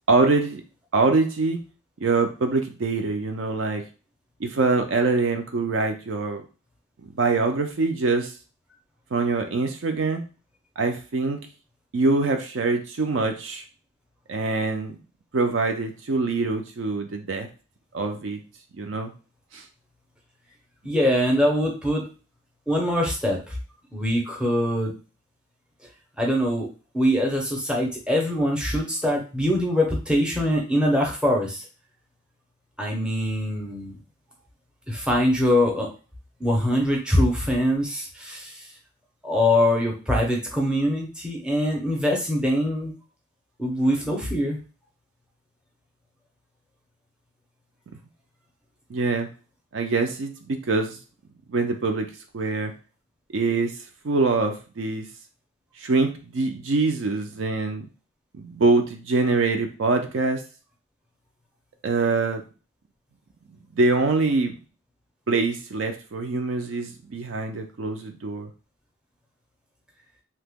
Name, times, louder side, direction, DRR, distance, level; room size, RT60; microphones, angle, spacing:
voice 1, 0.1-0.6 0.9-1.6 2.0-3.8 4.4-6.4 7.1-8.3 9.1-10.2 10.8-11.4 11.9-13.6 14.3-15.0 15.3-17.5 17.9-18.4 18.8-19.1 19.5-19.6 48.9-49.3 49.7-51.0 51.5-52.1 52.3-52.7 53.3-53.8 54.0-55.1 55.8-57.9 58.3-60.4 61.8-62.4 63.5-64.5 65.3-68.5, right 3 dB, 60° right, 5 dB, 0.4 m, -24 dB
voice 2, 20.8-22.1 22.7-23.6 23.9-24.9 26.2-26.7 26.9-31.7 32.8-33.9 34.9-35.9 36.4-38.7 39.2-42.9 43.6-44.6, left 1 dB, 5° right, -1 dB, 0.6 m, -23 dB
2.9 x 2.1 x 3.5 m, 0.34 s
head